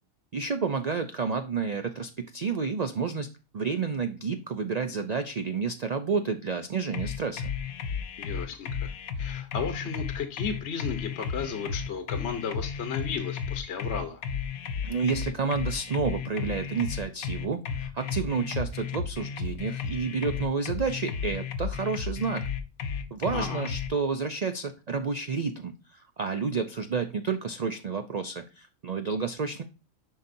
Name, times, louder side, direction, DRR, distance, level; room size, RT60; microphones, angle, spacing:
voice 1, 0.3-7.5 14.8-22.4 23.1-29.6, right 5 dB, 80° right, 8 dB, 0.3 m, -30 dB
sound 1, 6.9-23.9, left 6 dB, 85° left, 1.3 m, -33 dB
voice 2, 8.2-8.9 9.2-14.2 23.3-23.7, left 6 dB, 55° left, 7 dB, 1.1 m, -34 dB
10.5 x 4.0 x 2.6 m, 0.33 s
omnidirectional pair, 1.5 m